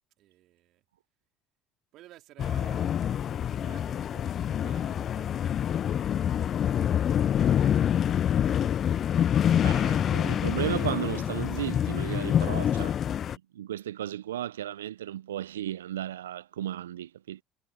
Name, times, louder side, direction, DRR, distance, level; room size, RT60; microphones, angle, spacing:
voice 1, 0.2-0.8 1.9-7.1 7.8-8.8, right 15 dB, 60° right, 3.2 m, -54 dB
sound 1, 2.4-13.4, left 9 dB, 45° left, 0.4 m, -26 dB
voice 2, 9.6-13.0 13.5-17.4, right 12 dB, 85° right, 0.4 m, -34 dB
hypercardioid pair, 70°, 0 cm